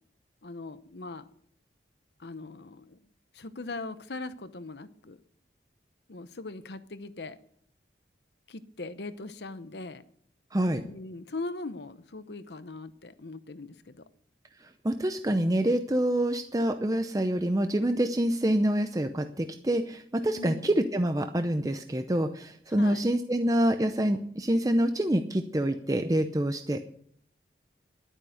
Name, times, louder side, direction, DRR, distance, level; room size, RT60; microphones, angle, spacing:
voice 1, 0.4-1.3 2.2-3.0 3.3-5.2 6.1-7.4 8.5-10.0 10.8-14.0 20.3-20.7 22.7-23.0, left 2 dB, 70° left, 0.9 m, -40 dB
voice 2, 10.5-10.8 14.8-26.8, right 1 dB, 20° right, 0.6 m, -26 dB
11.0 x 9.6 x 7.9 m
head